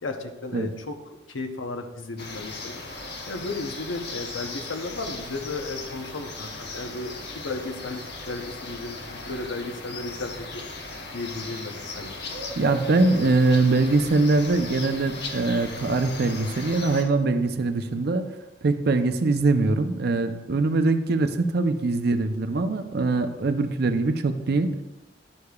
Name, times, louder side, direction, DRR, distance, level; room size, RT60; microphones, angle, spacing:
voice 1, 0.0-10.6 11.1-12.3, left 3 dB, 85° left, 6 dB, 0.8 m, -35 dB
sound 1, 2.2-17.0, left 2 dB, 60° left, 1.0 m, -37 dB
voice 2, 12.6-18.3 18.6-24.8, right 3 dB, 55° right, 9 dB, 0.5 m, -22 dB
10.5 x 6.6 x 2.3 m, 1.0 s
head